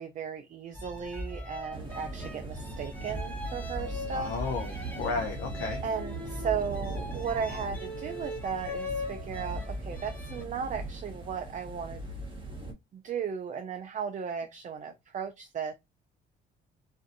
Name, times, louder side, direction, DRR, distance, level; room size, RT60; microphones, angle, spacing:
voice 1, 0.0-5.0 5.8-12.1 12.9-15.7, right 7 dB, 40° right, 0.4 m, -36 dB
sound 1, 0.7-10.4, left 1 dB, 10° left, 0.8 m, -39 dB
sound 2, 1.7-12.7, right 2 dB, 25° right, 1.1 m, -40 dB
voice 2, 4.1-5.8, left 4 dB, 85° left, 0.5 m, -33 dB
2.6 x 2.4 x 2.5 m
cardioid pair, 90°, 20 cm